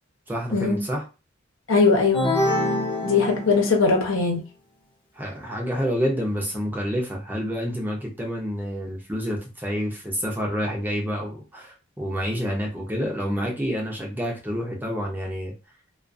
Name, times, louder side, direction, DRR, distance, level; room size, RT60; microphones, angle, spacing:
voice 1, 0.3-1.0 5.2-15.5, equal, 10° right, 0.6 m, -28 dB
voice 2, 1.7-2.3 3.0-4.4, left 4 dB, 80° left, 0.9 m, -20 dB
sound 1, 2.1-4.0, left 1 dB, 25° left, 0.7 m, -25 dB
2.4 x 2.3 x 2.5 m
head